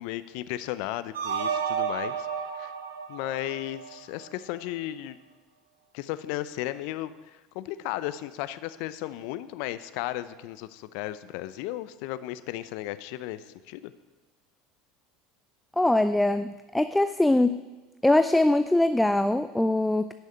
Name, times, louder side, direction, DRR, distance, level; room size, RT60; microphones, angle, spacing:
voice 1, 0.0-2.3 2.5-2.7 3.1-5.2 5.9-13.9, left 14 dB, 65° left, 14 dB, 0.6 m, -35 dB
sound 1, 1.1-4.3, right 7 dB, 85° right, 1.1 m, -32 dB
voice 2, 15.8-17.6 18.0-20.1, left 1 dB, 5° left, 11 dB, 0.5 m, -22 dB
11.5 x 6.4 x 8.6 m, 1.2 s
hypercardioid pair, 80°, 0 cm